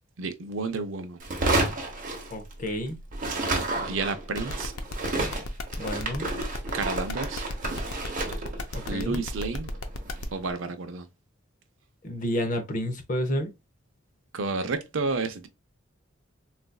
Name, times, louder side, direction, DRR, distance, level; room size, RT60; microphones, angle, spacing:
voice 1, 0.2-1.2 3.8-4.7 6.7-7.4 8.9-9.8 10.3-11.1 14.3-15.5, right 3 dB, 65° right, 0.5 m, -31 dB
sound 1, 1.2-2.8 3.1-10.3, right 2 dB, 40° right, 0.8 m, -31 dB
voice 2, 2.3-3.0 5.8-6.3 8.7-9.2 12.0-13.5, equal, 40° left, 0.7 m, -30 dB
sound 2, 4.3-10.2, left 3 dB, 85° left, 0.5 m, -36 dB
3.9 x 2.5 x 2.2 m
head